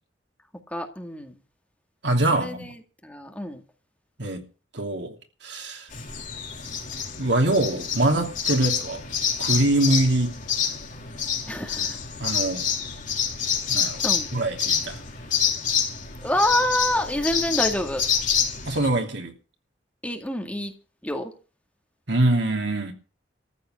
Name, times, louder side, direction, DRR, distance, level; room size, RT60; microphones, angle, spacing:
voice 1, 0.7-1.4 2.3-2.7 3.0-3.6 11.5-12.0 14.0-14.3 16.2-18.0 20.0-20.7 21.0-21.3, left 1 dB, 10° left, 2.1 m, -27 dB
voice 2, 2.0-2.7 4.2-4.4 4.7-5.2 5.4-5.9 7.2-9.0 9.4-10.4 12.2-12.7 13.7-14.0 14.3-15.0 18.6-19.3 22.1-22.9, right 1 dB, 65° right, 2.9 m, -23 dB
sound 1, 5.9-18.9, left 7 dB, 45° left, 4.0 m, -27 dB
14.0 x 7.5 x 8.9 m
head